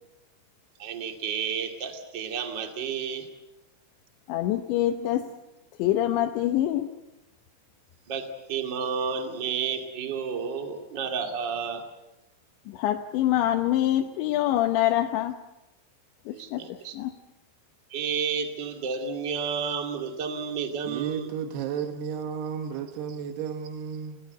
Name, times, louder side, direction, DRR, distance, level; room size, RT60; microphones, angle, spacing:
voice 1, 0.8-3.3 8.1-11.8 16.3-17.0 17.9-21.3, right 6 dB, 35° right, 5 dB, 2.0 m, -31 dB
voice 2, 4.3-5.3 5.8-6.9 12.7-15.4 16.3-16.6 16.9-17.1, left 13 dB, 80° left, 5 dB, 3.2 m, -25 dB
voice 3, 20.8-24.2, right 7 dB, 70° right, 6 dB, 3.1 m, -33 dB
30.0 x 17.5 x 8.2 m, 0.96 s
omnidirectional pair, 5.4 m